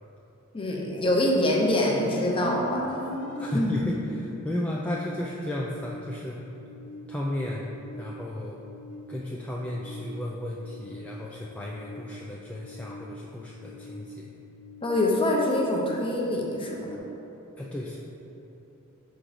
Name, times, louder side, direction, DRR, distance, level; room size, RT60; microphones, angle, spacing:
voice 1, 0.5-3.0 3.4-3.7 14.8-16.8, left 1 dB, 25° left, -2 dB, 0.8 m, -25 dB
sound 1, 1.1-17.0, left 1 dB, 60° left, 0.7 m, -41 dB
voice 2, 3.4-6.4 7.1-7.7 8.0-8.7 9.1-14.3 17.6-18.0, left 1 dB, 5° left, -4 dB, 0.3 m, -34 dB
5.8 x 3.8 x 4.9 m, 3.0 s
head